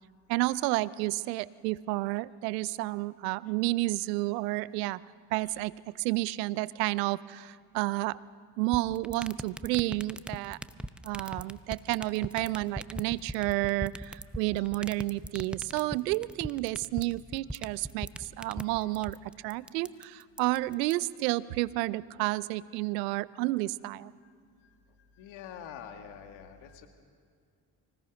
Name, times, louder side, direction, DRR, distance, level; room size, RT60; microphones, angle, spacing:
voice 1, 0.3-5.0 5.3-8.2 8.6-10.6 11.0-24.1, right 19 dB, 90° right, 21 dB, 0.5 m, -31 dB
sound 1, 8.7-20.9, right 1 dB, ahead, 0.8 m, -38 dB
voice 2, 25.1-26.9, left 8 dB, 75° left, 5 dB, 1.9 m, -47 dB
25.0 x 17.0 x 6.2 m, 2.2 s
hypercardioid pair, 45°, 47 cm